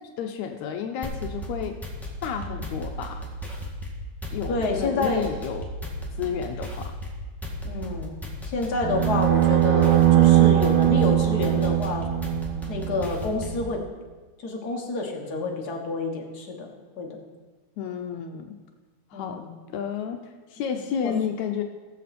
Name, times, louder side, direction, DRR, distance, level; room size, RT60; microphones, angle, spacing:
voice 1, 0.2-1.8 2.2-3.2 4.3-5.6 6.2-6.9 17.8-18.6 19.1-21.6, left 7 dB, 75° left, 5 dB, 1.9 m, -31 dB
sound 1, 1.0-13.7, equal, ahead, 0.7 m, -35 dB
voice 2, 4.5-5.3 7.6-8.1 8.5-12.1 12.7-13.8 14.4-17.2 19.1-19.5 21.0-21.1, left 3 dB, 45° left, 1 dB, 1.5 m, -28 dB
sound 2, 8.8-13.1, right 13 dB, 80° right, 1.2 m, -20 dB
18.5 x 7.5 x 4.2 m, 1.3 s
omnidirectional pair, 3.4 m